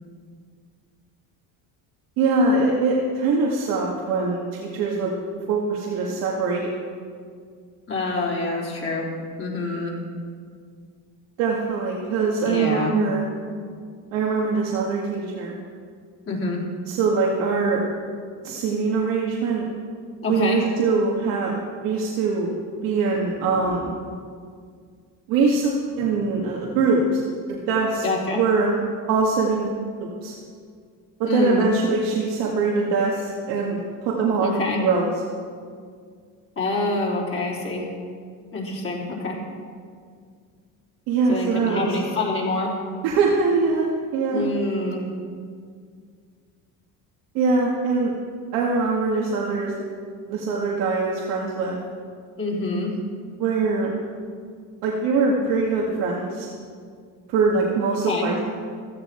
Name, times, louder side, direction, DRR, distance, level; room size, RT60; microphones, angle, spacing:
voice 1, 2.2-5.1 5.5-6.7 11.4-13.2 14.1-15.5 16.9-17.8 18.4-19.7 20.3-21.6 21.8-22.6 22.8-24.0 25.3-27.2 27.5-28.0 28.4-28.8 29.1-30.3 31.2-35.1 41.1-41.9 43.0-44.5 47.3-48.1 48.5-49.7 50.3-51.8 53.4-54.0 54.8-56.5 57.3-58.4, right 4 dB, 90° right, -3 dB, 2.0 m, -23 dB
voice 2, 7.9-9.1 9.4-10.0 12.4-12.9 16.3-16.6 20.2-20.6 28.0-28.4 31.3-31.7 34.4-34.8 36.6-37.8 38.5-39.4 41.3-42.7 44.3-45.0 52.4-52.9 58.1-58.3, left 2 dB, 40° left, -3 dB, 3.4 m, -26 dB
15.5 x 13.5 x 4.5 m, 2.1 s
cardioid pair, 140°, 34 cm